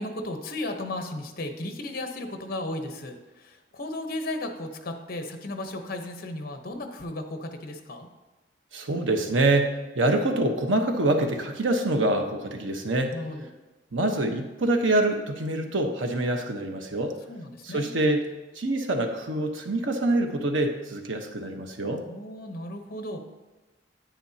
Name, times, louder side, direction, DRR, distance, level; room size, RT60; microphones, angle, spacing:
voice 1, 0.0-8.1 13.1-13.5 17.3-17.9 22.1-23.2, left 1 dB, 55° left, 6 dB, 1.0 m, -35 dB
voice 2, 8.7-13.1 13.9-17.2 17.6-18.3 18.5-22.0, right 2 dB, 85° right, 4 dB, 1.1 m, -25 dB
10.0 x 9.0 x 2.8 m, 1.2 s
head